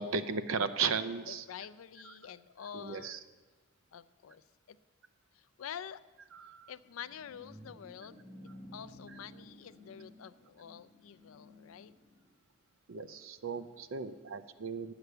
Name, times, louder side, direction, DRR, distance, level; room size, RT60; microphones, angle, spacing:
voice 1, 0.0-1.4 2.1-2.2 2.7-3.2 6.3-6.7 12.9-14.9, right 5 dB, 80° right, 11 dB, 0.6 m, -35 dB
voice 2, 1.3-3.2 3.9-4.8 5.3-6.0 6.7-8.2 8.7-11.9, left 8 dB, 90° left, 16 dB, 0.4 m, -47 dB
sound 1, 6.7-12.3, equal, 65° right, 3.1 m, -54 dB
9.4 x 8.0 x 6.7 m, 1.3 s
head